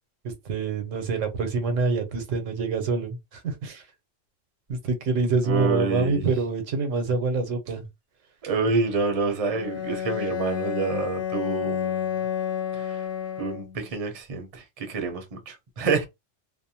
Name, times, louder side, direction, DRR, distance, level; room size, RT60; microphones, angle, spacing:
voice 1, 0.2-3.8 4.7-7.9, right 3 dB, 80° right, 1.1 m, -26 dB
voice 2, 5.4-6.3 8.4-12.1 12.7-13.0 13.4-16.0, right 4 dB, 35° right, 0.6 m, -27 dB
Bowed string instrument, 9.5-13.9, left 9 dB, 65° left, 0.8 m, -30 dB
2.5 x 2.1 x 2.7 m
omnidirectional pair, 1.3 m